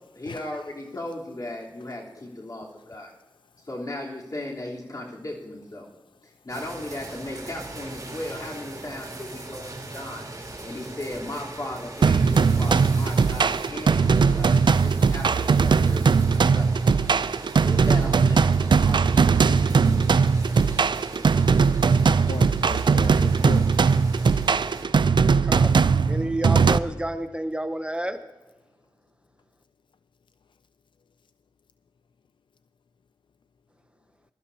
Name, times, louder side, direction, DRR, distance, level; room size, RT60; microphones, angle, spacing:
voice 1, 0.2-3.1 3.6-5.9 6.2-10.3 10.6-16.7 17.6-19.1, left 1 dB, 45° left, -3 dB, 3.6 m, -36 dB
sound 1, 6.5-24.8, right 2 dB, 45° right, 2.8 m, -40 dB
sound 2, 12.0-26.8, right 5 dB, 70° right, 0.4 m, -20 dB
voice 2, 21.1-21.7 25.2-25.8 26.1-28.2, right 1 dB, 15° right, 9 dB, 0.7 m, -31 dB
voice 3, 22.0-23.7, left 5 dB, 80° left, 12 dB, 0.4 m, -37 dB
21.5 x 12.5 x 2.8 m, 1.2 s
cardioid pair, 50°, 8 cm